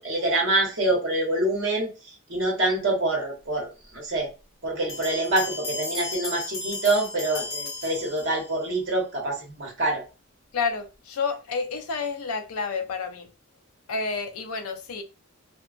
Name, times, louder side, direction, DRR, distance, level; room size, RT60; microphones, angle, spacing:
voice 1, 0.0-1.9 2.3-4.3 4.6-10.0, right 2 dB, 55° right, 0.9 m, -26 dB
Bell, 4.9-8.7, left 3 dB, 60° left, 0.9 m, -35 dB
voice 2, 10.5-13.3 13.9-15.0, left 4 dB, 75° left, 0.4 m, -29 dB
2.7 x 2.2 x 2.4 m
head